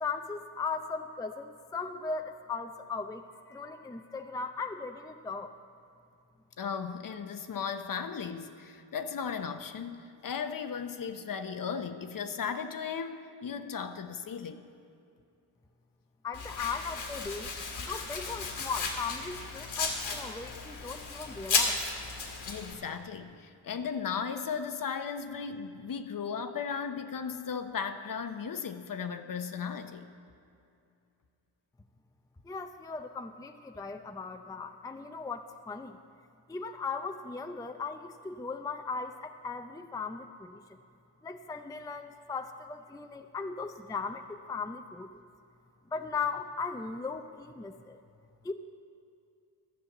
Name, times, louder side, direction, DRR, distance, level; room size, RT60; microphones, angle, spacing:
voice 1, 0.0-5.5 16.2-17.5 17.8-21.8 32.4-36.0 36.5-40.8 41.2-45.3 45.9-48.0 48.4-48.5, left 4 dB, 10° left, 6 dB, 0.5 m, -38 dB
voice 2, 6.6-14.6 22.5-30.0, left 6 dB, 45° left, 9 dB, 0.9 m, -36 dB
Domestic sounds home sounds, 16.3-22.7, left 4 dB, 75° left, 2.1 m, -34 dB
13.5 x 5.7 x 7.8 m, 2.6 s
cardioid pair, 65°, 46 cm